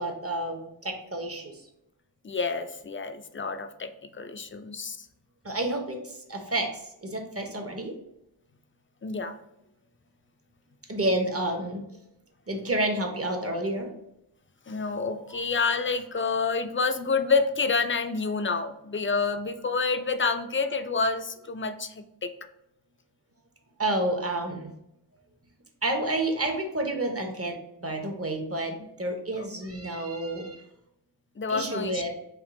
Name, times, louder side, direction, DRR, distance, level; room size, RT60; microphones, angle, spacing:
voice 1, 0.0-1.6 5.4-7.9 10.9-11.8 12.5-13.9 23.8-24.7 25.8-30.6 31.5-32.1, right 1 dB, 35° right, 3 dB, 0.8 m, -30 dB
voice 2, 2.2-5.1 9.0-9.4 14.7-22.3 29.4-29.5 31.4-32.1, left 4 dB, 30° left, 8 dB, 0.4 m, -28 dB
3.6 x 2.8 x 3.6 m, 0.82 s
wide cardioid pair, 45°, 43 cm